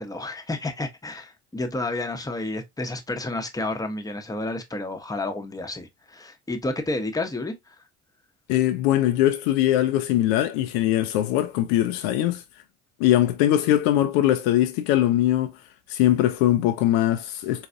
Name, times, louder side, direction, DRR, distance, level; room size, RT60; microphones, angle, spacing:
voice 1, 0.0-7.5, left 2 dB, 10° left, 0.8 m, -30 dB
voice 2, 8.5-12.4 13.0-15.5 15.9-17.7, left 13 dB, 70° left, 0.5 m, -21 dB
4.0 x 2.3 x 2.5 m
hypercardioid pair, 60°, 33 cm